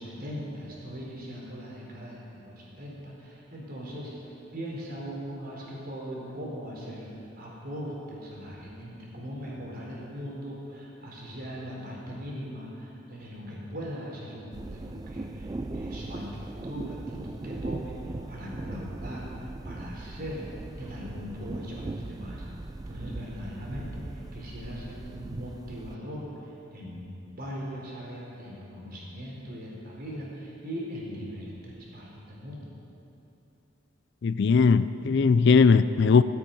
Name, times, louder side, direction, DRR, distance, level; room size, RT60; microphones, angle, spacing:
voice 1, 0.0-20.4 20.8-22.4 22.9-32.7, equal, 50° right, -4 dB, 4.3 m, -40 dB
sound 1, 14.5-26.0, right 2 dB, 20° right, 0.3 m, -39 dB
voice 2, 34.2-36.2, left 5 dB, 60° left, 14 dB, 0.4 m, -19 dB
15.5 x 9.3 x 9.2 m, 2.9 s
head